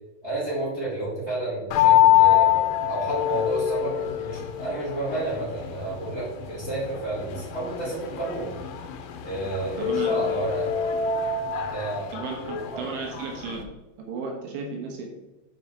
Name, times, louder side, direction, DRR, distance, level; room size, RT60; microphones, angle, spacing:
voice 1, 0.2-8.5 9.2-10.7 11.7-12.1 12.4-12.9, right 2 dB, 20° right, -8 dB, 2.1 m, -31 dB
sound 1, 1.7-13.6, left 11 dB, 85° left, 3.1 m, -25 dB
voice 2, 9.8-10.3 12.1-13.6 14.1-15.0, right 4 dB, 75° right, 0 dB, 3.6 m, -34 dB
8.9 x 4.9 x 4.6 m, 1.0 s
omnidirectional pair, 5.6 m